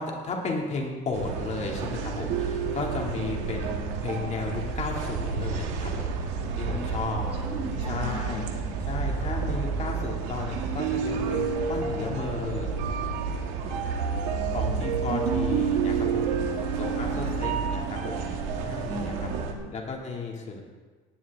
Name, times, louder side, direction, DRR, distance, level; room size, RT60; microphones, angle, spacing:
voice 1, 0.0-7.5 7.9-8.4 8.9-12.7 14.5-16.3 16.7-20.6, left 4 dB, 35° left, 0 dB, 2.5 m, -34 dB
sound 1, 1.1-19.5, right 5 dB, 85° right, 1.6 m, -29 dB
voice 2, 6.1-8.4 13.6-14.8 16.3-17.3 18.9-19.7, right 1 dB, 30° right, 0 dB, 4.1 m, -41 dB
18.0 x 10.5 x 3.7 m, 1.4 s
supercardioid pair, 100°, 20 cm